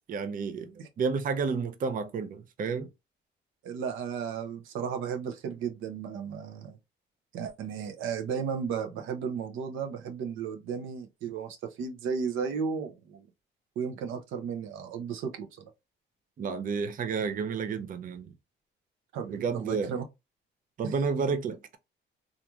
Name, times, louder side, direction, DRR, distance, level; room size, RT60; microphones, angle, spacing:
voice 1, 0.1-0.7 1.0-2.9 16.4-18.3 19.2-19.9 20.8-21.8, right 5 dB, 45° right, 0.5 m, -31 dB
voice 2, 3.6-6.8 7.3-13.3 13.8-15.7 19.1-20.0, right 6 dB, 85° right, 0.6 m, -34 dB
3.0 x 2.5 x 2.3 m
cardioid pair, 90°, 20 cm